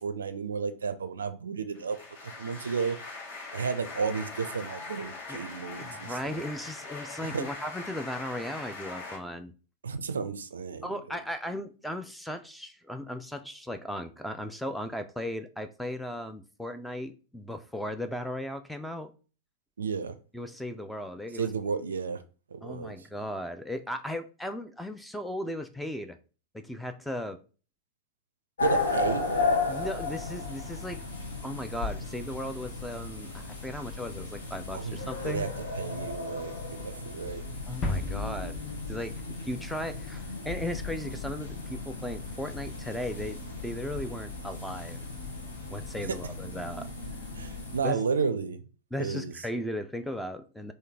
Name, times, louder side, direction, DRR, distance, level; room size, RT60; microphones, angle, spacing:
voice 1, 0.0-2.0 2.2-3.0 3.5-6.4 7.2-7.5 9.8-10.9 19.8-20.2 21.4-22.2 22.5-22.9 28.6-29.2 34.7-35.5 35.8-37.4 47.4-48.6 49.0-49.3, right 5 dB, 70° right, 0.4 m, -32 dB
sound 1, 1.7-9.2, left 3 dB, 55° left, 1.7 m, -42 dB
voice 2, 5.8-9.5 10.8-19.1 20.3-21.5 22.6-26.2 26.5-27.4 29.7-31.0 31.4-35.5 37.7-38.6 38.9-45.1 45.7-46.9 47.8-48.0 48.9-50.7, left 1 dB, ahead, 0.4 m, -36 dB
sound 2, 28.6-47.8, left 3 dB, 70° left, 0.9 m, -35 dB
sound 3, 37.8-39.7 39.9-40.0, left 2 dB, 30° left, 0.7 m, -34 dB
3.2 x 2.6 x 3.9 m
figure-of-eight pair, 90°, 0 cm